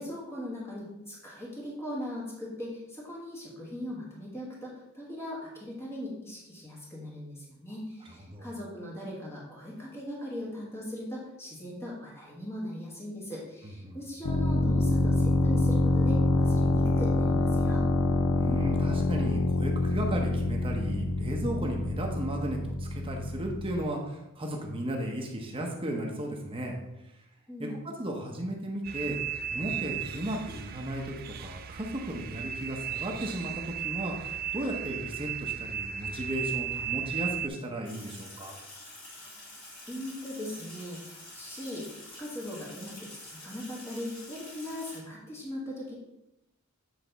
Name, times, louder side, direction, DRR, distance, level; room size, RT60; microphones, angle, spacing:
voice 1, 0.0-17.8 27.5-27.8 39.9-41.9 42.2-45.9, left 1 dB, 10° left, -5 dB, 1.6 m, -39 dB
sound 1, 14.2-23.8, left 2 dB, 75° left, 0.6 m, -26 dB
voice 2, 18.3-26.8 27.6-27.7 28.0-29.2 29.5-38.6, right 1 dB, 25° right, 0 dB, 0.8 m, -35 dB
sound 2, 28.8-37.5, right 9 dB, 45° right, 0.3 m, -36 dB
Sink (filling or washing), 37.9-45.0, left 2 dB, 40° left, 2.1 m, -47 dB
8.0 x 3.5 x 3.9 m, 0.89 s
head